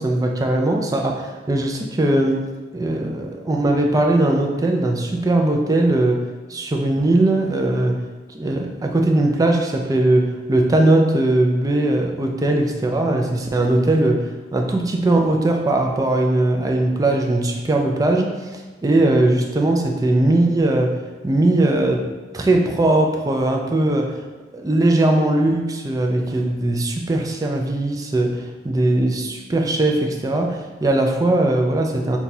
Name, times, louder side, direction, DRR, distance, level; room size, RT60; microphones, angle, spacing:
voice 1, 0.0-2.4 2.7-6.2 6.5-8.0 8.3-14.2 14.5-20.9 21.2-22.0 22.3-24.1 24.5-32.2, right 2 dB, 20° right, 2 dB, 0.4 m, -19 dB
5.7 x 2.3 x 2.7 m, 1.3 s
head